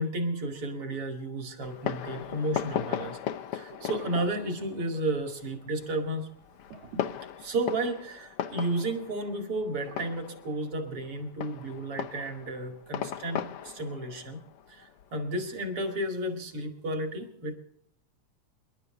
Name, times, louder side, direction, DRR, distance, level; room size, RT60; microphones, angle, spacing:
voice 1, 0.0-3.2 3.5-6.3 7.4-14.4 14.7-17.5, right 1 dB, 50° right, 5 dB, 3.1 m, -32 dB
Fireworks, 1.6-15.8, left 10 dB, 65° left, 1.5 m, -38 dB
sound 1, 3.7-5.1 5.4-5.6 6.7-8.0 9.8-10.2, right 6 dB, 75° right, 3.3 m, -45 dB
27.5 x 11.5 x 3.9 m, 0.68 s
omnidirectional pair, 3.3 m